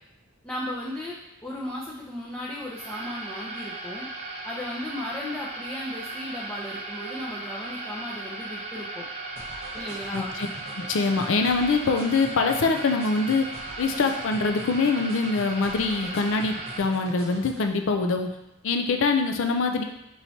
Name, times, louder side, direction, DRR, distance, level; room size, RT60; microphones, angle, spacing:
voice 1, 0.4-1.2 1.4-4.1 4.4-9.1 9.7-10.3, left 1 dB, 10° left, -6 dB, 0.6 m, -35 dB
sound 1, 2.6-16.8, right 2 dB, 35° right, 0.6 m, -37 dB
sound 2, 9.4-17.7, right 1 dB, 50° right, 1.0 m, -43 dB
voice 2, 10.1-10.5 10.8-13.5 13.8-18.3 18.6-19.8, left 4 dB, 65° left, 5 dB, 0.5 m, -24 dB
5.8 x 3.1 x 2.7 m, 0.90 s
head